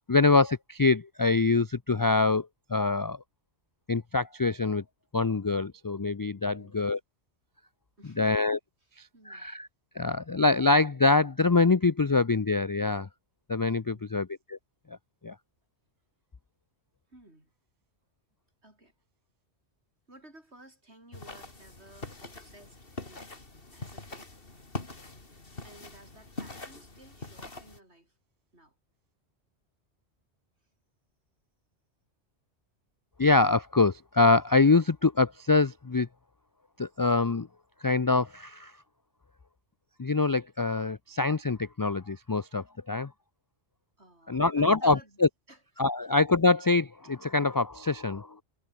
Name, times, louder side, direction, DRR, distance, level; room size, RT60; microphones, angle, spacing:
voice 1, 0.0-3.2 3.9-4.8 5.1-7.0 8.2-8.6 9.3-9.7 10.0-13.1 13.5-14.6 15.2-15.3 33.2-36.1 36.8-37.5 37.8-38.7 40.0-43.1 44.3-45.3 45.8-48.4, left 3 dB, 30° left, 0.3 m, -25 dB
voice 2, 6.5-7.0 8.0-8.5 8.8-9.5 13.9-14.3 17.1-17.5 18.6-18.9 20.1-23.3 23.7-24.3 25.6-28.2 28.5-28.8 44.0-45.2 45.5-46.1, right 1 dB, 70° right, 7.2 m, -55 dB
sound 1, 21.1-27.8, left 2 dB, 55° left, 3.4 m, -43 dB
omnidirectional pair, 1.2 m